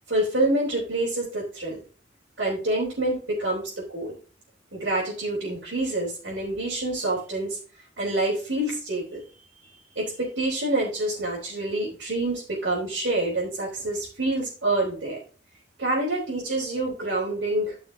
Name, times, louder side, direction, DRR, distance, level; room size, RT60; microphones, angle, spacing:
voice 1, 0.1-1.8 2.4-4.2 4.7-7.6 8.0-9.2 10.0-15.2 15.8-17.7, right 2 dB, 90° right, -8 dB, 3.8 m, -27 dB
13.5 x 6.3 x 2.8 m, 0.37 s
head